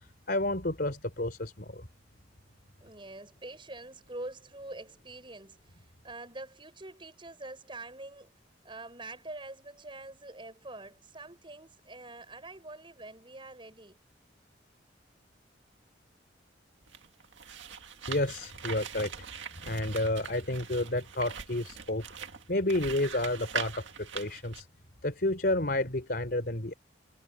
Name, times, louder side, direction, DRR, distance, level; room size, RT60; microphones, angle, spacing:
voice 1, 0.3-1.9 18.1-19.1 19.6-22.0 22.5-24.7 25.0-26.7, left 1 dB, 55° left, 3.9 m, -30 dB
voice 2, 2.8-5.6 6.0-8.3 8.6-14.0, right 2 dB, 25° right, 6.5 m, -45 dB
sound 1, 16.8-24.6, right 7 dB, 85° right, 1.9 m, -42 dB
head